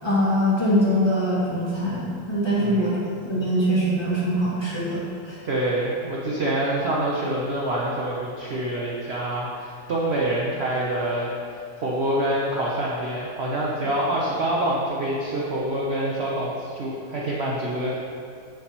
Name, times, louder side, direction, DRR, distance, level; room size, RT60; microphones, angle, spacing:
voice 1, 0.0-3.0 3.3-5.4, equal, 15° left, -10 dB, 1.9 m, -23 dB
voice 2, 2.5-3.0 5.4-18.0, right 1 dB, 55° right, -5 dB, 0.7 m, -26 dB
8.3 x 7.4 x 2.9 m, 2.4 s
omnidirectional pair, 2.1 m